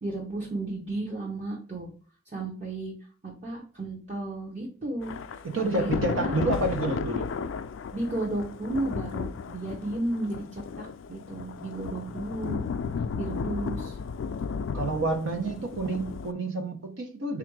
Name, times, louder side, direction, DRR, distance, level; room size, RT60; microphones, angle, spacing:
voice 1, 0.0-1.9 2.3-2.9 3.2-5.2 5.6-6.3 7.9-12.6 13.1-14.0, right 2 dB, 35° right, 0.7 m, -33 dB
Thunder / Rain, 5.0-16.3, left 5 dB, 75° left, 0.3 m, -34 dB
voice 2, 5.4-7.3 14.7-17.4, right 2 dB, 85° right, 0.8 m, -29 dB
3.5 x 2.5 x 4.6 m
head